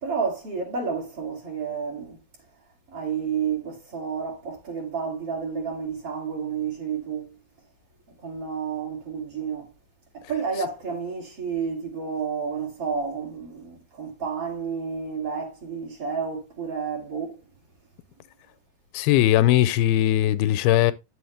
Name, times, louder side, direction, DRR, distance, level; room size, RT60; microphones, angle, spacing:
voice 1, 0.0-2.2 2.9-7.3 8.2-9.7 10.1-17.4, right 6 dB, 40° right, 3.3 m, -30 dB
voice 2, 18.9-20.9, left 13 dB, 85° left, 2.5 m, -19 dB
9.0 x 7.9 x 3.3 m
omnidirectional pair, 4.2 m